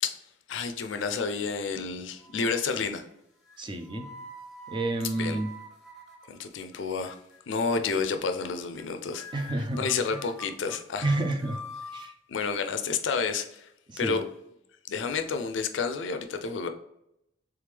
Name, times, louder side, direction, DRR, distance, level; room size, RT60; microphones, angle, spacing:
voice 1, 0.5-3.1 5.1-5.4 6.3-7.2 7.5-9.3 9.8-11.1 12.3-13.7 14.0-14.2 14.9-16.7, left 5 dB, 75° left, 8 dB, 0.4 m, -30 dB
sound 1, 1.5-1.8 2.2-2.7 3.5-6.8 7.1-7.4 7.8-8.1 8.4-8.5 8.7-8.8 9.1-12.1, equal, ahead, 1.0 m, -46 dB
voice 2, 3.6-4.1 4.7-5.5 9.3-10.2 11.0-11.6 11.9-12.1 13.9-14.2, right 2 dB, 25° right, 5 dB, 0.5 m, -30 dB
3.5 x 3.3 x 3.3 m, 0.81 s
head